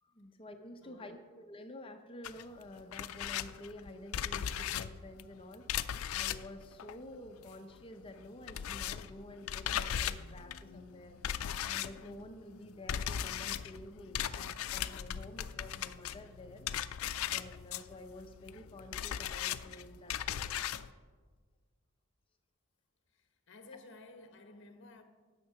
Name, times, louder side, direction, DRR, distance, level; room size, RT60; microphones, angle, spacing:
voice 1, 0.0-17.0 17.3-20.8, left 1 dB, 25° left, 0.6 m, -50 dB
voice 2, 0.8-1.2 23.1-25.0, left 3 dB, 55° left, 1.0 m, -54 dB
sound 1, 2.2-20.9, left 10 dB, 75° left, 0.4 m, -38 dB
9.8 x 6.7 x 5.6 m
head